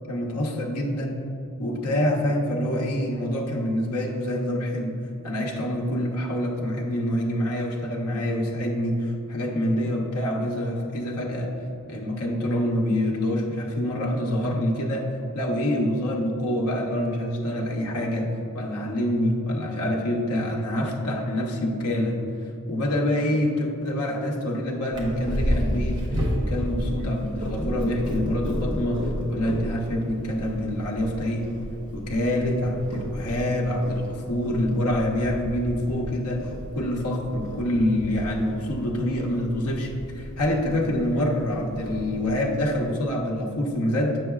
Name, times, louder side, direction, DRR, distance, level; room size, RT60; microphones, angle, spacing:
voice 1, 0.1-1.2 1.6-5.0 5.2-11.5 11.9-15.1 15.3-22.2 22.7-31.5 31.9-36.5 36.7-44.2, left 1 dB, 90° left, -1 dB, 0.8 m, -26 dB
Purr, 24.9-42.8, equal, 20° right, 1.0 m, -32 dB
7.4 x 6.4 x 2.3 m, 2.9 s
head